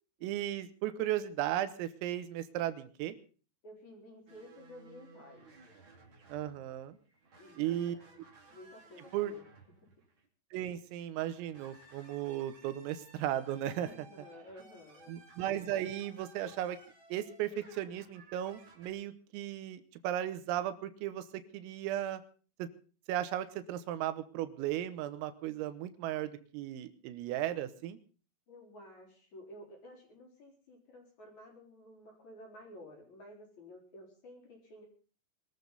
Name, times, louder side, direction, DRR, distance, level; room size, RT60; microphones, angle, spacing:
voice 1, 0.2-3.2 6.3-7.0 7.6-8.0 9.1-9.3 10.5-14.1 15.1-16.8 17.1-22.2 22.6-22.7 23.1-28.0, right 12 dB, 85° right, 12 dB, 3.7 m, -36 dB
voice 2, 3.6-5.5 7.4-8.2 8.5-9.4 9.8-9.9 13.8-15.1 28.5-34.9, left 1 dB, 40° left, 0 dB, 5.0 m, -53 dB
sound 1, 4.3-10.3 11.2-18.9, right 3 dB, 35° right, 2.5 m, -58 dB
23.0 x 13.5 x 4.1 m, 0.39 s
omnidirectional pair, 5.9 m